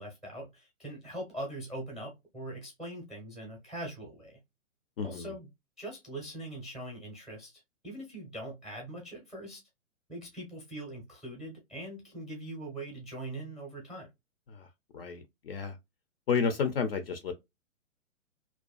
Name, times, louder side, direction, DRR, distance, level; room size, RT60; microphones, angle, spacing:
voice 1, 0.0-4.4 5.0-5.5 5.8-9.6 10.1-14.1, right 1 dB, ahead, 0.5 m, -42 dB
voice 2, 5.0-5.3 14.5-14.7 14.9-15.8 16.3-17.3, left 6 dB, 50° left, 0.4 m, -31 dB
2.5 x 2.2 x 2.2 m
figure-of-eight pair, 125°, 40 cm